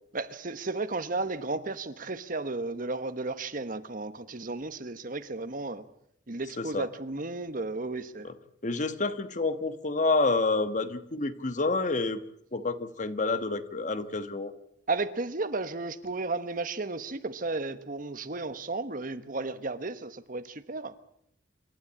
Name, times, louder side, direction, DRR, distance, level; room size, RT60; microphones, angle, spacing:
voice 1, 0.1-5.9 6.3-8.3 14.9-20.9, right 3 dB, 45° right, 1.2 m, -34 dB
voice 2, 8.6-12.2 12.5-14.5, left 3 dB, 40° left, 1.3 m, -28 dB
27.5 x 13.0 x 8.8 m
head